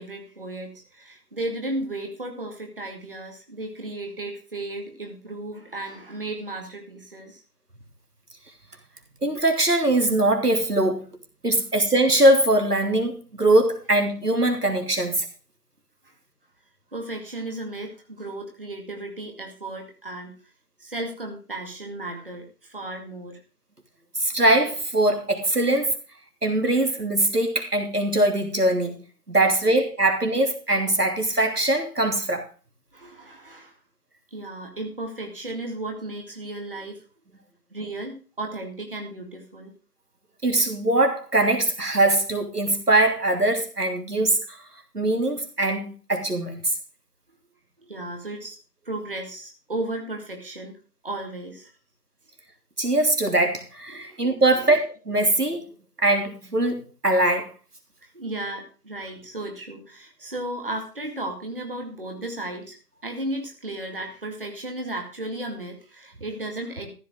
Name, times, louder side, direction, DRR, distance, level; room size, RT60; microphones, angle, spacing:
voice 1, 0.0-7.4 16.0-16.1 16.9-20.3 20.8-23.4 32.9-33.8 34.3-37.0 37.7-39.7 47.8-48.6 48.8-50.8 51.0-51.7 53.9-54.2 54.5-54.7 58.0-62.8 63.0-66.9, right 2 dB, 35° right, 2.2 m, -34 dB
voice 2, 9.2-11.1 11.4-15.2 24.2-25.9 26.4-28.9 29.3-32.4 40.4-44.6 44.9-46.7 52.8-55.6 56.0-57.5, right 1 dB, 85° right, 3.1 m, -22 dB
14.5 x 5.6 x 6.6 m
figure-of-eight pair, 170°, 45 cm